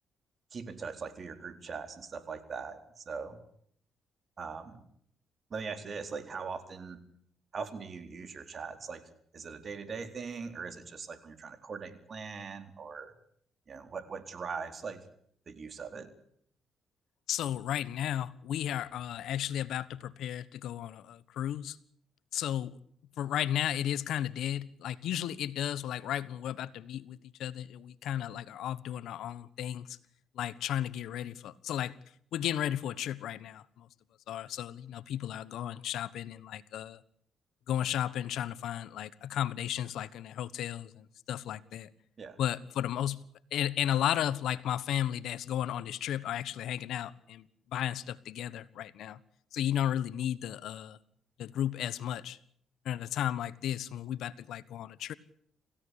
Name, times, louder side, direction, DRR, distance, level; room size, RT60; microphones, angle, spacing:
voice 1, 0.5-3.4 4.4-4.8 5.5-7.0 7.5-9.0 9.3-13.1 13.7-15.0 15.5-16.1 42.2-42.4, right 5 dB, 45° right, 9 dB, 4.1 m, -41 dB
voice 2, 17.3-21.8 22.3-22.8 23.2-30.0 30.3-32.0 32.3-33.9 34.3-37.0 37.7-41.9 42.4-43.2 43.5-49.2 49.5-51.0 51.4-52.4 52.8-55.1, left 11 dB, 80° left, 17 dB, 1.2 m, -34 dB
28.0 x 16.5 x 8.4 m, 0.66 s
cardioid pair, 90°, 0 cm